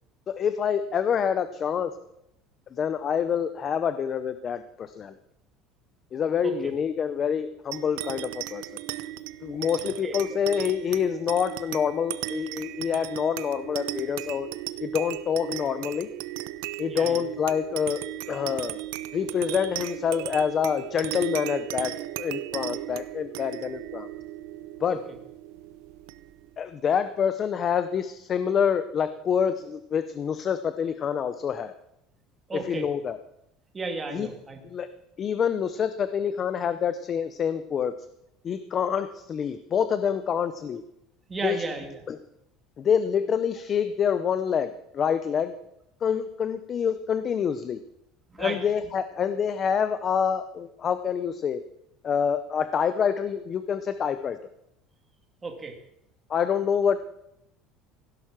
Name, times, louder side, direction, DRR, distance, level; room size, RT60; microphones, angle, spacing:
voice 1, 0.3-1.9 2.7-5.1 6.1-8.7 9.4-14.5 14.8-16.1 16.8-18.0 18.3-18.8 19.1-21.9 22.2-24.1 24.8-25.0 26.6-31.7 32.5-33.2 34.1-34.3 34.6-34.9 35.2-37.9 38.4-40.8 41.4-41.6 42.1-42.2 42.8-45.5 46.0-47.8 48.4-51.6 52.0-54.4 56.3-57.0, left 7 dB, 25° left, 12 dB, 0.6 m, -27 dB
sound 1, 7.7-26.6, right 16 dB, 85° right, 0.7 m, -36 dB
voice 2, 16.9-17.2 32.5-32.9 33.7-34.6 41.3-41.9 48.3-48.6 55.4-55.7, right 3 dB, 15° right, 3 dB, 2.1 m, -33 dB
16.5 x 11.0 x 5.9 m, 0.81 s
cardioid pair, 175°, 0 cm